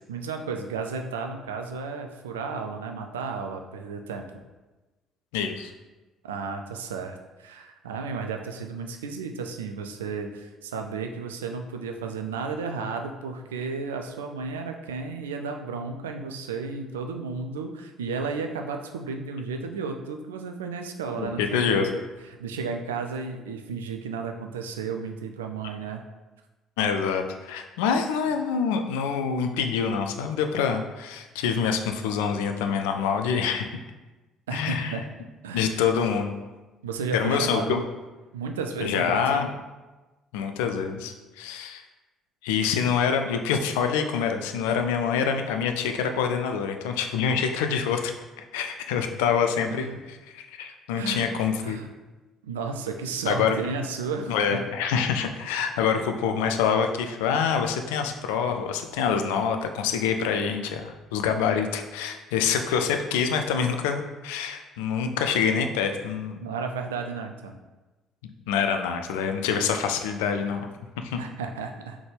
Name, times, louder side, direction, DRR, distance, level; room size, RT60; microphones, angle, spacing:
voice 1, 0.1-4.3 6.2-22.0 22.4-26.0 34.5-35.0 35.4-35.8 36.8-37.8 38.3-39.5 42.8-43.0 51.0-51.3 51.6-51.9 52.4-54.6 55.8-56.0 66.4-67.6 71.2-72.0, right 4 dB, 75° right, 5 dB, 0.3 m, -33 dB
voice 2, 5.3-5.7 21.2-21.9 26.8-33.7 34.5-35.0 35.5-36.3 37.1-37.8 38.8-39.5 40.3-41.8 42.4-48.1 48.5-49.9 50.3-51.8 53.3-53.5 54.3-66.5 68.5-70.7 71.0-71.2, left 7 dB, 70° left, 5 dB, 0.3 m, -26 dB
3.8 x 3.5 x 3.3 m, 1.2 s
figure-of-eight pair, 50°, 0 cm